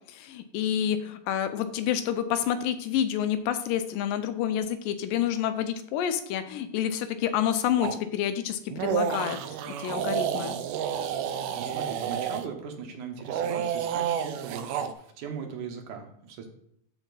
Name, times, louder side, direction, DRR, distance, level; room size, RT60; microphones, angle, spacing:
voice 1, 0.1-9.4 9.7-10.6, left 10 dB, 85° left, 10 dB, 2.4 m, -28 dB
sound 1, 7.8-8.0 8.7-12.5 13.2-14.9, right 8 dB, 85° right, 1.5 m, -30 dB
voice 2, 11.3-16.5, right 6 dB, 70° right, 4 dB, 2.6 m, -39 dB
13.0 x 4.4 x 4.0 m, 0.72 s
omnidirectional pair, 3.9 m